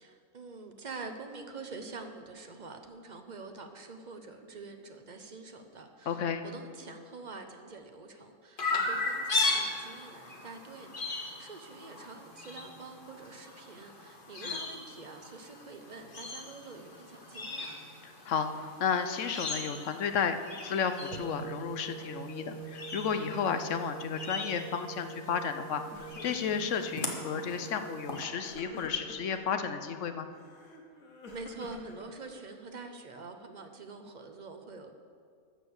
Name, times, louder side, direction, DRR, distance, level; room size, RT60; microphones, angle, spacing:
voice 1, 0.0-17.8 31.3-34.9, right 3 dB, 35° right, 6 dB, 0.9 m, -46 dB
voice 2, 6.1-6.4 14.4-14.6 18.0-30.3, left 7 dB, 65° left, 9 dB, 1.0 m, -33 dB
Chirp tweet, 8.6-28.2, left 3 dB, 40° left, 1.4 m, -38 dB
sound 1, 21.1-28.4, right 7 dB, 80° right, 1.0 m, -45 dB
Crying sobbing, 25.3-25.6 25.8-26.9 27.4-27.8 28.4-29.4 30.3-32.6, left 2 dB, 80° left, 1.7 m, -48 dB
13.5 x 6.7 x 7.1 m, 2.2 s
omnidirectional pair, 1.5 m